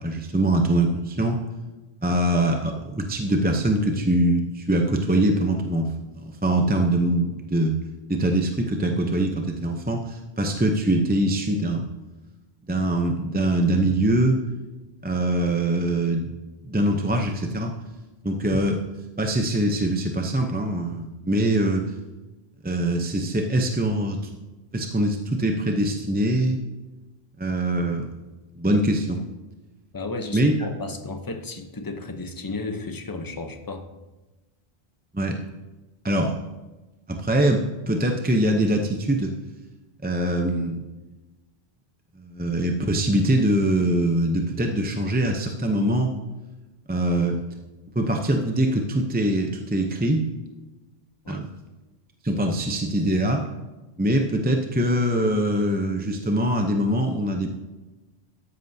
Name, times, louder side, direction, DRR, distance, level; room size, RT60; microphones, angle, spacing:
voice 1, 0.0-1.4 2.0-5.9 6.4-7.8 8.1-11.9 12.7-14.4 15.0-16.3 16.6-17.7 18.2-18.8 19.2-21.9 22.6-24.2 24.7-26.6 27.4-28.1 28.6-29.2 30.3-30.5 35.1-35.4 36.0-36.4 37.1-39.3 40.0-40.8 42.2-46.1 46.9-47.4 47.9-50.3 51.3-51.5 52.2-53.5 54.0-57.5, right 1 dB, 10° right, 3 dB, 0.5 m, -23 dB
voice 2, 29.9-33.8 51.2-51.4, left 3 dB, 20° left, 6 dB, 0.8 m, -33 dB
13.5 x 10.0 x 2.7 m, 1.1 s
omnidirectional pair, 1.1 m